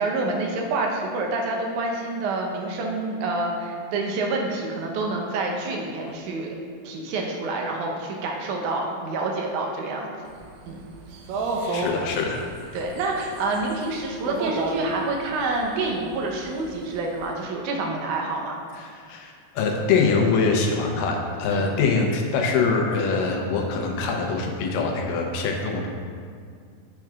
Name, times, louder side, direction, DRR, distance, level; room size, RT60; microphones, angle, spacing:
voice 1, 0.0-6.5 6.8-10.1 10.7-10.8 11.6-11.9 12.7-18.6 21.5-21.7, right 2 dB, 70° right, 0 dB, 2.1 m, -28 dB
sound 1, 10.3-17.1, right 3 dB, 90° right, 2.4 m, -31 dB
voice 2, 11.7-12.4 18.8-25.9, left 4 dB, 75° left, 1 dB, 2.4 m, -24 dB
10.5 x 6.0 x 2.4 m, 2.1 s
omnidirectional pair, 4.0 m